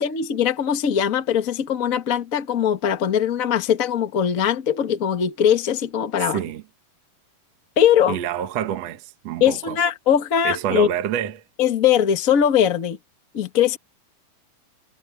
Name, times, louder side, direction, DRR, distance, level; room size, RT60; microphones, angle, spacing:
voice 1, 0.0-6.4 7.8-8.2 9.4-10.9 11.6-13.0 13.3-13.8, left 9 dB, 80° left, 0.7 m, -20 dB
voice 2, 6.2-6.6 8.1-9.8 10.4-11.4, right 10 dB, 55° right, 2.1 m, -27 dB
omnidirectional pair, 4.3 m